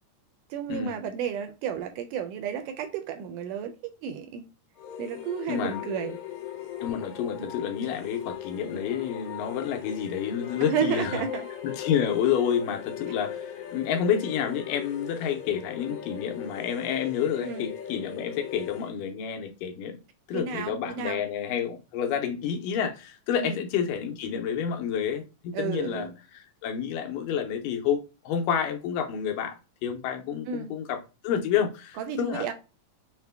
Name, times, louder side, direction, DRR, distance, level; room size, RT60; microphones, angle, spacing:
voice 1, 0.5-3.7 4.0-4.5 5.0-6.2 7.4-7.5 10.6-11.5 17.4-17.7 20.3-21.2 23.4-23.6 25.5-26.1 30.5-30.7 32.0-32.5, right 7 dB, 80° right, 2.0 m, -32 dB
sound 1, 4.8-18.9, left 10 dB, 60° left, 1.9 m, -38 dB
voice 2, 5.5-5.9 6.8-11.2 11.6-20.0 20.3-29.5 29.8-32.5, left 8 dB, 80° left, 2.3 m, -29 dB
6.3 x 2.1 x 3.4 m
omnidirectional pair, 4.0 m